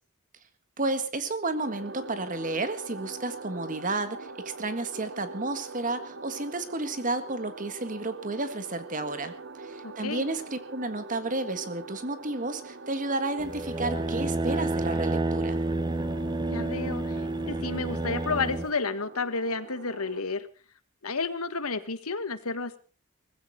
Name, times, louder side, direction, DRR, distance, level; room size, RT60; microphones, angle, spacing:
voice 1, 0.8-15.6, right 2 dB, 35° right, 10 dB, 1.7 m, -32 dB
sound 1, 1.6-20.2, right 3 dB, 55° right, 1.1 m, -43 dB
voice 2, 9.8-10.3 16.5-17.2 17.5-20.5 21.0-22.8, left 4 dB, 85° left, 12 dB, 1.5 m, -31 dB
sound 2, 13.4-18.7, right 2 dB, 20° right, 0.9 m, -29 dB
19.5 x 15.5 x 4.2 m, 0.37 s
head